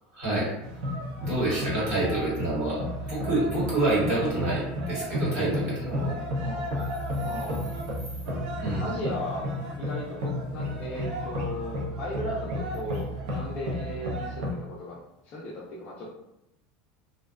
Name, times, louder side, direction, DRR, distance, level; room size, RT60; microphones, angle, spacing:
voice 1, 0.1-0.5 1.2-2.8 3.1-6.1 8.6-8.9, right 2 dB, 40° right, -7 dB, 1.0 m, -27 dB
sound 1, 0.6-14.5, equal, 70° right, 0.6 m, -32 dB
voice 2, 6.4-6.8 7.2-7.7 8.8-9.5 9.8-15.0 15.2-16.1, left 1 dB, 25° left, -6 dB, 0.4 m, -36 dB
2.5 x 2.2 x 2.3 m, 0.87 s
cardioid pair, 175°, 5 cm